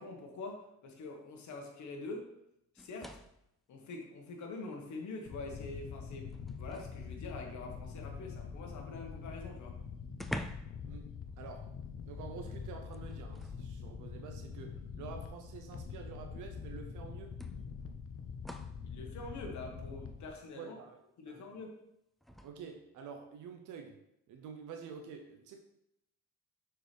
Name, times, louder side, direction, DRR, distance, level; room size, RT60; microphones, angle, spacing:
voice 1, 0.0-2.3 2.7-3.2 3.7-9.8 18.8-20.7 21.2-21.7, left 3 dB, 70° left, 1 dB, 1.4 m, -45 dB
sound 1, 2.8-3.5 4.9-5.0 5.4-7.0 9.1-9.2 9.5-9.6 10.1-10.9 11.1-11.4 12.9-13.6 14.8-14.9 16.4-16.5 17.4-18.9 22.2-22.5, equal, ahead, 0.3 m, -46 dB
sound 2, 5.3-20.3, left 6 dB, 50° left, 0.7 m, -45 dB
voice 2, 10.9-11.8 12.0-17.4 20.5-21.0 21.3-21.6 22.4-24.0 24.3-25.6, right 6 dB, 80° right, 5 dB, 0.7 m, -48 dB
6.2 x 4.6 x 3.3 m, 0.80 s
cardioid pair, 90°, 30 cm